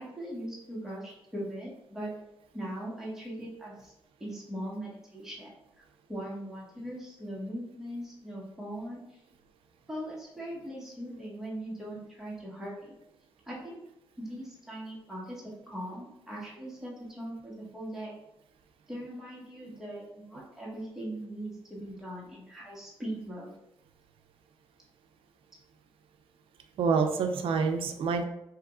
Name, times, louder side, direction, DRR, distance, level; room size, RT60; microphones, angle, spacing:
voice 1, 0.0-2.1 2.5-3.9 4.2-9.2 9.9-13.0 13.4-13.8 14.2-18.1 18.9-23.5, right 1 dB, 5° right, -6 dB, 1.4 m, -40 dB
voice 2, 26.8-28.2, right 5 dB, 75° right, 6 dB, 0.4 m, -27 dB
4.6 x 3.0 x 2.4 m, 0.85 s
cardioid pair, 70°, 9 cm